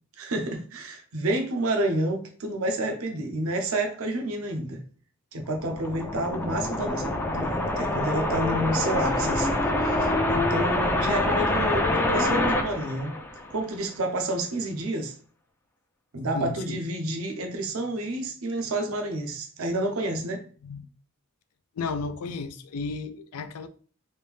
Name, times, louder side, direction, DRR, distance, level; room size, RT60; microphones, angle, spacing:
voice 1, 0.2-4.8 5.3-13.1 13.5-15.1 16.1-20.4, right 1 dB, 70° right, 0.6 m, -29 dB
sound 1, 5.4-13.8, left 1 dB, 10° left, 0.4 m, -26 dB
voice 2, 16.3-16.8 20.6-20.9 21.8-23.7, left 4 dB, 85° left, 0.4 m, -33 dB
3.3 x 2.6 x 3.4 m
head